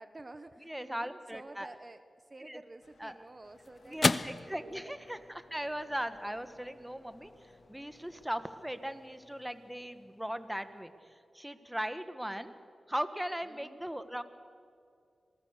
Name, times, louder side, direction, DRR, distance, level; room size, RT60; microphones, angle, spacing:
voice 1, 0.0-2.0 2.3-5.2 13.5-13.8, right 2 dB, 35° right, 10 dB, 1.2 m, -51 dB
voice 2, 0.6-1.7 2.4-2.6 3.0-3.2 3.8-12.5 12.9-14.2, equal, 5° right, 10 dB, 1.5 m, -38 dB
sound 1, 2.7-11.3, left 3 dB, 45° left, 0.8 m, -39 dB
sound 2, 2.8-8.3, left 2 dB, 90° left, 4.2 m, -64 dB
26.5 x 19.5 x 6.7 m, 2.3 s
cardioid pair, 50°, 0 cm